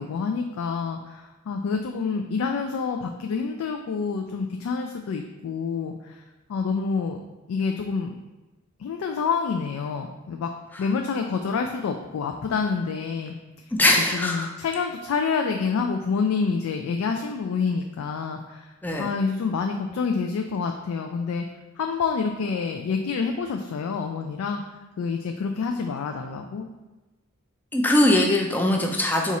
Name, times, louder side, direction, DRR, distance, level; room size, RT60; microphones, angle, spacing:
voice 1, 0.0-6.2 6.5-7.2 7.5-8.1 8.8-10.5 10.8-13.4 14.1-18.7 19.0-21.5 21.8-24.6 25.0-26.7, left 5 dB, 80° left, 4 dB, 0.3 m, -27 dB
voice 2, 13.7-14.5 18.8-19.1 27.7-29.4, left 1 dB, 10° left, 0 dB, 0.4 m, -21 dB
4.1 x 2.4 x 4.1 m, 1.1 s
head